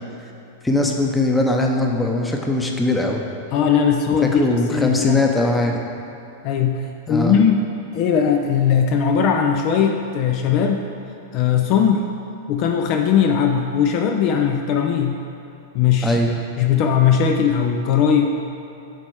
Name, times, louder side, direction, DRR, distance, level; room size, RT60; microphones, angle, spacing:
voice 1, 0.6-3.2 4.3-5.8 7.1-7.4 16.0-16.3, left 2 dB, 10° left, 1 dB, 0.8 m, -20 dB
voice 2, 3.5-5.2 6.4-6.8 7.1-10.9 11.3-12.1 12.5-15.2 15.7-16.2 16.6-18.3, left 7 dB, 50° left, 4 dB, 0.5 m, -19 dB
7.6 x 4.2 x 4.8 m, 2.9 s
hypercardioid pair, 110°, 0 cm